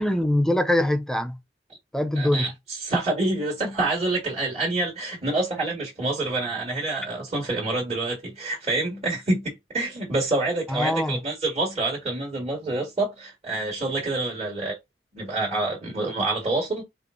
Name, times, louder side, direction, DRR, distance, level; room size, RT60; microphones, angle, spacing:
voice 1, 0.0-1.4 1.9-2.5 10.7-11.2, left 1 dB, 5° left, 0.5 m, -23 dB
voice 2, 2.2-14.8 15.1-16.8, right 2 dB, 35° right, 2.0 m, -27 dB
5.2 x 2.5 x 3.8 m
head